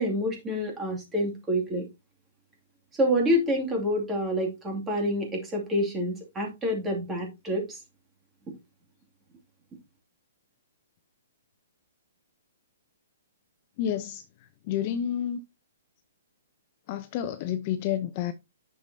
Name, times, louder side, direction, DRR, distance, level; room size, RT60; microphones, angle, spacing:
voice 1, 0.0-1.9 3.0-7.8, equal, 10° right, 2.4 m, -27 dB
voice 2, 13.8-14.2 14.7-15.4 16.9-18.3, left 10 dB, 30° left, 0.6 m, -29 dB
9.4 x 6.7 x 2.7 m
hypercardioid pair, 165°, 0 cm